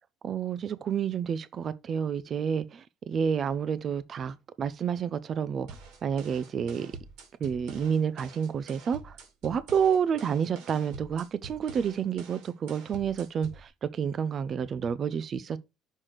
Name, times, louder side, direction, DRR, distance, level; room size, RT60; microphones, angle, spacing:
voice 1, 0.2-5.7 6.0-6.9 7.4-9.2 9.4-15.6, right 7 dB, 35° right, 0.4 m, -29 dB
sound 1, 5.7-13.7, right 4 dB, 85° right, 2.4 m, -47 dB
6.3 x 3.2 x 5.8 m
cardioid pair, 150°, 0 cm